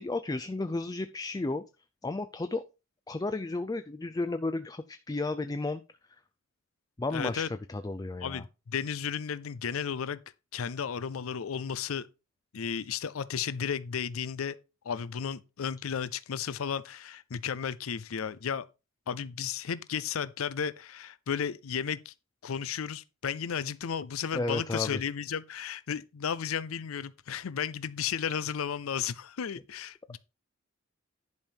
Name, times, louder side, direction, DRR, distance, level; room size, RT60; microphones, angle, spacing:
voice 1, 0.0-1.6 2.0-2.6 3.1-5.8 7.0-8.4 24.3-25.0, left 2 dB, 20° left, 0.4 m, -33 dB
voice 2, 7.1-7.5 8.2-10.2 10.5-12.1 12.5-14.6 14.8-18.7 19.1-22.1 22.4-30.2, left 7 dB, 90° left, 0.5 m, -34 dB
10.5 x 5.2 x 4.5 m
head